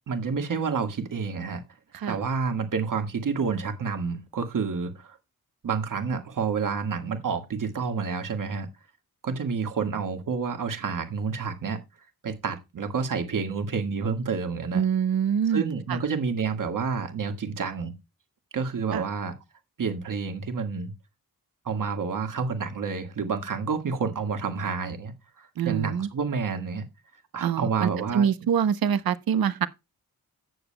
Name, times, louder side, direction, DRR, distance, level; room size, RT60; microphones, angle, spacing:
voice 1, 0.1-1.6 2.1-5.2 5.6-8.7 9.2-11.8 12.2-14.8 15.5-17.9 18.5-19.3 19.8-20.9 21.7-26.9 27.3-28.3, right 5 dB, 60° right, 1.8 m, -29 dB
voice 2, 14.7-15.6 18.9-19.0 25.6-26.1 27.4-29.7, right 8 dB, 75° right, 0.8 m, -25 dB
16.0 x 6.9 x 2.2 m
wide cardioid pair, 90°, 36 cm